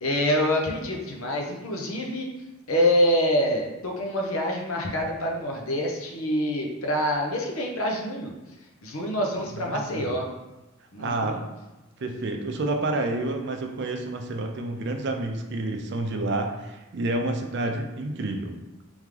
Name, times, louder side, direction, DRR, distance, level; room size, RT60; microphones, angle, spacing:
voice 1, 0.0-2.3 2.7-8.3 8.8-10.2 10.9-11.4, equal, 75° left, 1 dB, 0.8 m, -26 dB
voice 2, 9.6-10.1 11.0-11.4 12.0-18.5, right 2 dB, 55° right, 4 dB, 0.5 m, -29 dB
3.5 x 3.5 x 3.3 m, 1.0 s
head